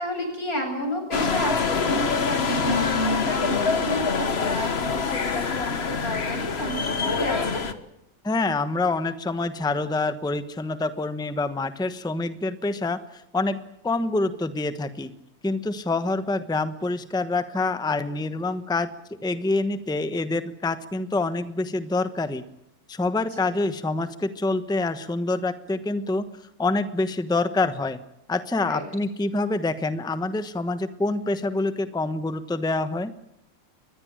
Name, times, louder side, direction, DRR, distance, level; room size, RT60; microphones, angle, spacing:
voice 1, 0.0-7.7 23.4-23.5 28.6-28.8, left 1 dB, 90° left, 3 dB, 8.6 m, -31 dB
sound 1, 1.1-7.7, left 4 dB, 45° left, 1.6 m, -25 dB
voice 2, 8.2-13.6 13.8-15.1 15.4-18.9 19.2-22.4 22.9-26.3 26.6-28.0 28.3-33.1, left 2 dB, 5° left, 11 dB, 1.0 m, -26 dB
23.5 x 21.0 x 8.9 m, 0.83 s
omnidirectional pair, 1.5 m